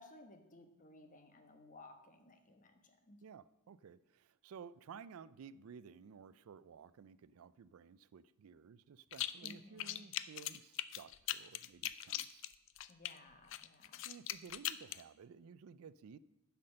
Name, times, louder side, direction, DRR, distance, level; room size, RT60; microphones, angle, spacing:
voice 1, 0.0-3.2 9.4-10.1 12.9-14.0, left 2 dB, 40° left, 6 dB, 1.1 m, -58 dB
voice 2, 3.2-12.4 14.0-16.2, right 6 dB, 75° right, 18 dB, 0.4 m, -55 dB
sound 1, 9.1-9.5 9.8-13.1 13.5-15.0, left 13 dB, 60° left, 0.4 m, -40 dB
10.5 x 5.9 x 6.4 m, 0.94 s
head